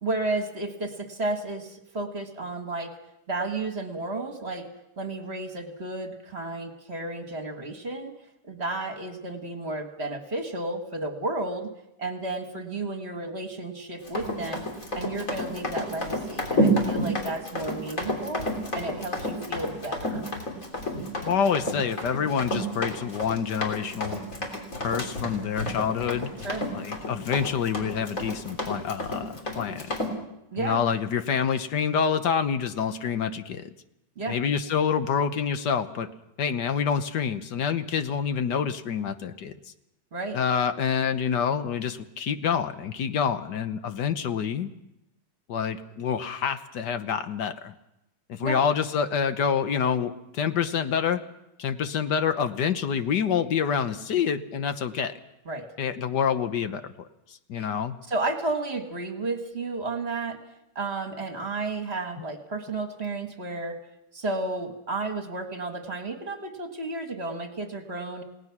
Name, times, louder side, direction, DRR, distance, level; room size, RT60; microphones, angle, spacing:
voice 1, 0.0-3.0 3.3-4.7 5.0-8.2 8.4-11.7 12.0-14.7 15.0-18.5 18.7-20.2 26.4-26.6 30.5-30.8 34.2-34.4 40.1-40.4 48.4-48.7 55.5-55.7 57.6-57.7 58.1-60.4 60.8-63.8 64.1-68.2, right 2 dB, 35° right, 5 dB, 1.9 m, -32 dB
Run, 14.0-30.1, equal, 45° left, 3.9 m, -30 dB
voice 2, 21.2-24.2 24.8-26.3 26.7-29.9 30.6-33.7 34.3-36.1 36.4-39.5 40.3-44.7 45.5-47.7 48.3-51.2 51.6-55.1 55.8-58.0, left 7 dB, 70° left, 10 dB, 1.6 m, -27 dB
29.0 x 18.0 x 6.0 m, 0.86 s
omnidirectional pair, 1.9 m